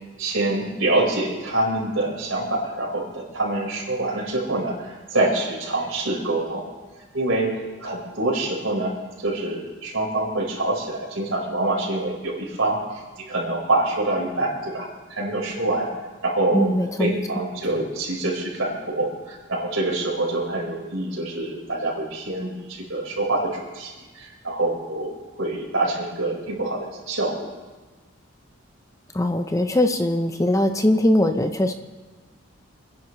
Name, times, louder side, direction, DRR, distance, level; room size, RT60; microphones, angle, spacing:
voice 1, 0.2-6.6 7.1-15.9 16.2-16.7 17.0-27.5, right 2 dB, 90° right, -3 dB, 4.8 m, -26 dB
voice 2, 16.5-17.2 29.1-31.7, left 1 dB, 15° left, 7 dB, 0.6 m, -21 dB
28.5 x 10.5 x 3.2 m, 1.3 s
head